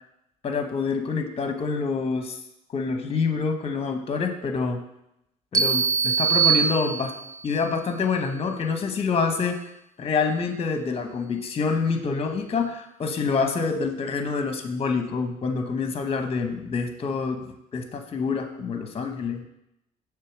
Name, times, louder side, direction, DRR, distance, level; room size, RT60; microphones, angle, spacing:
voice 1, 0.4-2.4 2.7-4.8 5.5-7.1 7.4-9.6 10.0-19.4, left 4 dB, 35° left, 6 dB, 0.9 m, -27 dB
sound 1, 5.5-7.5, right 6 dB, 20° right, 0.4 m, -22 dB
6.6 x 3.5 x 6.0 m, 0.84 s
cardioid pair, 110°, 17 cm